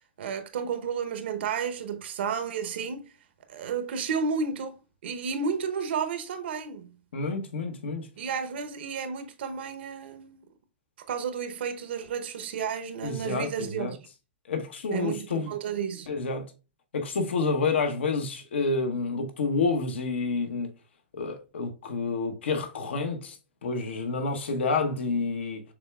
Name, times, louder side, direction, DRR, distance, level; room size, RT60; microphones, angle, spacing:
voice 1, 0.2-3.1 3.5-6.9 8.2-10.4 11.1-14.0 14.9-16.1, right 6 dB, 70° right, 0.8 m, -32 dB
voice 2, 7.1-8.1 13.0-13.9 14.5-15.5 16.1-16.5 16.9-20.7 21.1-23.4 23.6-25.6, left 4 dB, 85° left, 1.0 m, -29 dB
6.2 x 3.4 x 2.3 m
hypercardioid pair, 145°, 6 cm